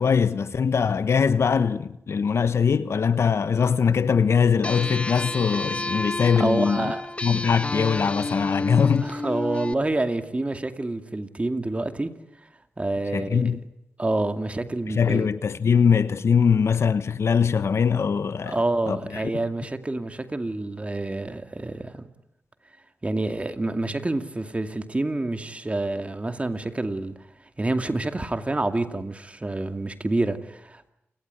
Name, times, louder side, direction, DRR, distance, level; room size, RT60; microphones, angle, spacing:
voice 1, 0.0-6.9 7.2-9.1 13.1-13.6 14.9-18.6 18.9-19.0, left 6 dB, 70° left, 1.2 m, -22 dB
sound 1, 4.6-9.7, left 2 dB, 25° left, 1.1 m, -30 dB
voice 2, 6.4-7.0 9.0-12.1 12.8-13.6 14.0-15.3 18.5-22.0 23.0-27.1 27.6-30.9, right 2 dB, 25° right, 2.4 m, -28 dB
29.0 x 19.0 x 9.6 m
cardioid pair, 60°, 5 cm